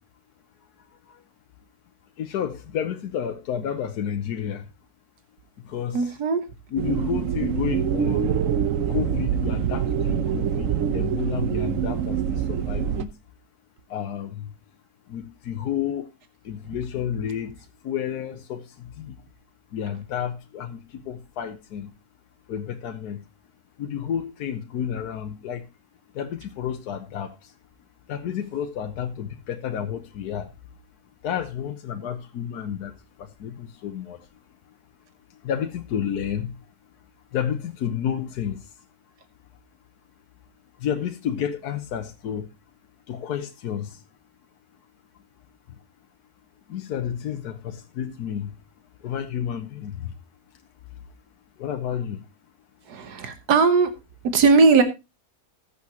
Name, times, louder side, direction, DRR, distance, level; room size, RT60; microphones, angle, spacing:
voice 1, 2.2-4.6 5.7-6.0 6.7-8.3 8.9-13.1 13.9-14.5 15.1-16.0 16.5-17.5 17.8-18.6 19.0-19.1 19.7-20.8 21.1-21.9 22.5-23.2 23.8-25.6 26.2-27.3 28.1-30.5 31.2-32.9 33.4-34.2 35.4-36.5 37.3-38.6 40.8-42.5 43.1-43.9 46.7-48.5 49.0-50.0 51.6-52.2, left 9 dB, 85° left, 1.4 m, -30 dB
voice 2, 5.9-6.4 52.9-54.0 54.3-54.8, right 4 dB, 85° right, 1.7 m, -18 dB
sound 1, 6.8-13.0, right 8 dB, 60° right, 1.1 m, -25 dB
19.5 x 7.1 x 2.9 m
omnidirectional pair, 1.7 m